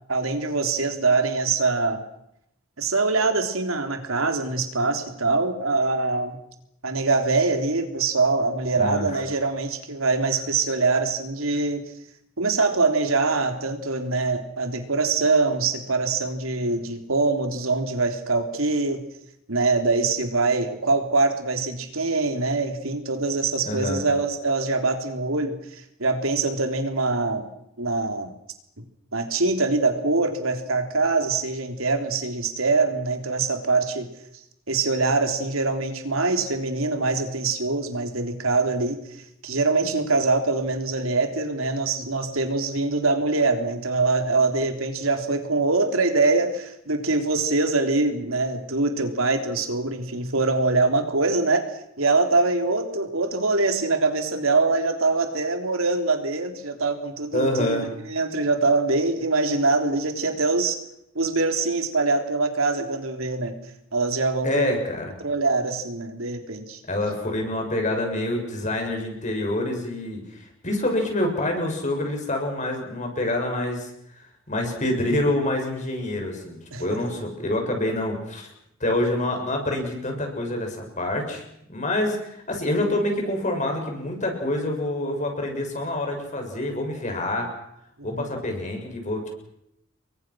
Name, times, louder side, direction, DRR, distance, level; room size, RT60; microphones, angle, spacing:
voice 1, 0.1-2.0 2.8-6.4 6.8-11.9 12.4-19.0 19.5-27.5 27.8-28.3 28.8-28.9 29.1-34.1 34.7-51.7 52.0-60.8 61.2-64.8 65.2-66.8 76.7-77.0 88.0-88.3, right 3 dB, 90° right, 6 dB, 3.5 m, -24 dB
voice 2, 8.7-9.1 23.6-24.0 57.3-57.9 64.4-65.1 66.9-73.9 74.5-78.5 78.8-81.4 81.7-87.5 88.0-89.3, left 1 dB, 35° left, 3 dB, 7.3 m, -26 dB
29.5 x 23.0 x 6.4 m, 0.77 s
head